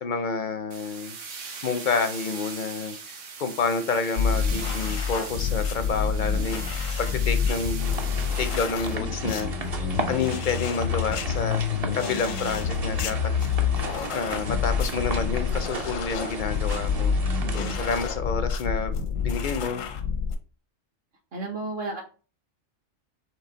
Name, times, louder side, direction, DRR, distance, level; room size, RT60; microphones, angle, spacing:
voice 1, 0.0-1.2 1.6-6.6 7.0-7.9 8.4-9.5 10.1-11.6 11.9-13.6 14.1-17.1 17.5-19.8, left 5 dB, 60° left, 9 dB, 0.5 m, -29 dB
sound 1, 0.7-8.7, right 5 dB, 75° right, 1.2 m, -39 dB
sound 2, 4.2-20.4, left 6 dB, 85° left, 1.0 m, -28 dB
sound 3, 7.8-18.1, right 3 dB, 40° right, 0.6 m, -35 dB
voice 2, 17.4-17.8 21.3-22.0, right 3 dB, 55° right, 3 dB, 1.1 m, -33 dB
4.7 x 2.9 x 3.8 m, 0.37 s
omnidirectional pair, 1.3 m